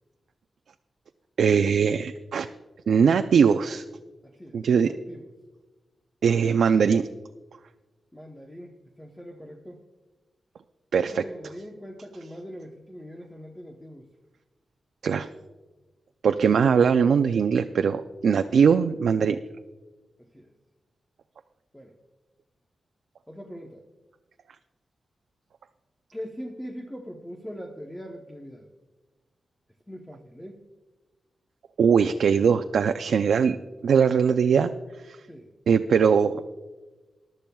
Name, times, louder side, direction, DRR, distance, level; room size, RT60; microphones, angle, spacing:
voice 1, 1.4-2.5 2.9-3.8 4.5-4.9 6.2-7.1 10.9-11.2 15.0-15.3 16.2-19.4 31.8-33.6 33.8-34.7 35.1-35.2 35.7-36.5, right 6 dB, 85° right, 7 dB, 0.4 m, -21 dB
voice 2, 4.2-5.3 8.1-9.8 11.1-14.1 20.2-20.5 21.7-22.0 23.3-23.8 26.1-28.7 29.9-30.7 35.3-35.5, equal, 5° left, 0 dB, 0.9 m, -41 dB
21.0 x 12.0 x 2.3 m, 1.2 s
wide cardioid pair, 170°, 0 cm